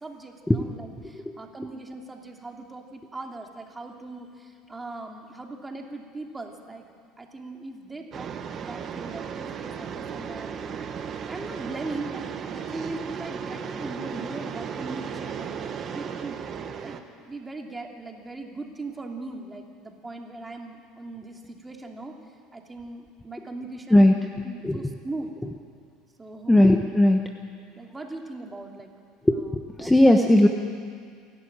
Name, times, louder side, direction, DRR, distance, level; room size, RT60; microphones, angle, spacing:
voice 1, 0.0-6.9 7.2-10.5 11.3-16.4 16.8-22.2 22.5-24.1 24.4-25.3 26.2-26.6 27.8-28.9 29.3-29.9, right 2 dB, 15° right, 2 dB, 2.8 m, -39 dB
sound 1, 8.1-17.0, right 7 dB, 40° right, 1.5 m, -35 dB
voice 2, 26.5-27.2 29.3-29.4 29.8-30.5, left 1 dB, 10° left, 3 dB, 1.2 m, -17 dB
28.5 x 12.0 x 8.9 m, 2.2 s
supercardioid pair, 105°, 0 cm